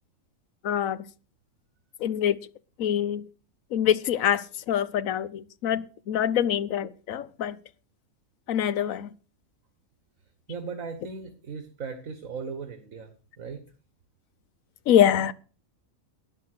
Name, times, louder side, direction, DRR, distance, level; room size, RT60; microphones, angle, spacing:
voice 1, 0.6-1.0 2.0-2.4 2.8-3.2 3.7-7.6 8.5-9.1 14.9-15.3, left 10 dB, 85° left, 1.2 m, -25 dB
voice 2, 10.5-13.6, right 5 dB, 85° right, 1.9 m, -37 dB
12.0 x 9.7 x 6.6 m
omnidirectional pair, 1.4 m